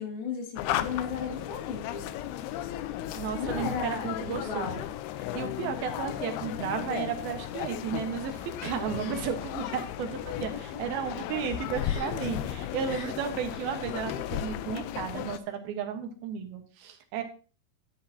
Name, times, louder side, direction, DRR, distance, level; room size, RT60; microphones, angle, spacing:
voice 1, 0.0-2.1 3.3-4.9 9.0-9.3 11.8-12.3 12.9-13.1, left 6 dB, 65° left, 1 dB, 3.8 m, -36 dB
sound 1, 0.6-15.4, left 12 dB, 80° left, 2.6 m, -35 dB
voice 2, 3.1-4.9 5.3-17.2, right 7 dB, 70° right, 6 dB, 2.9 m, -34 dB
12.0 x 10.5 x 2.8 m, 0.36 s
omnidirectional pair, 4.7 m